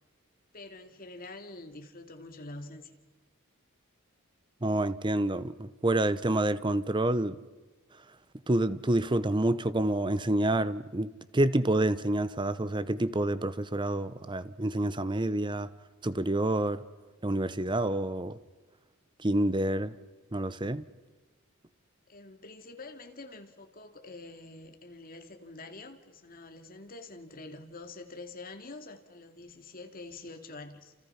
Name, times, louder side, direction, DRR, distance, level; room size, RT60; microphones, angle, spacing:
voice 1, 0.5-3.0 22.1-30.9, left 2 dB, 40° left, 2.4 m, -46 dB
voice 2, 4.6-7.4 8.5-15.7 16.0-16.8 17.2-18.4 19.2-19.9 20.3-20.8, right 1 dB, 20° right, 0.8 m, -28 dB
29.5 x 28.5 x 5.8 m
head